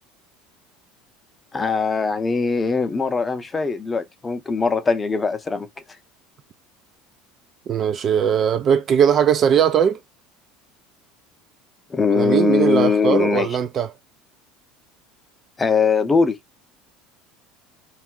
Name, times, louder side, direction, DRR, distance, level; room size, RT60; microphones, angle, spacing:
voice 1, 1.5-5.7 11.9-13.5 15.6-16.4, left 5 dB, 20° left, 0.6 m, -21 dB
voice 2, 7.7-10.0 12.1-13.9, right 8 dB, 45° right, 0.3 m, -19 dB
2.4 x 2.1 x 3.6 m
hypercardioid pair, 80°, 0 cm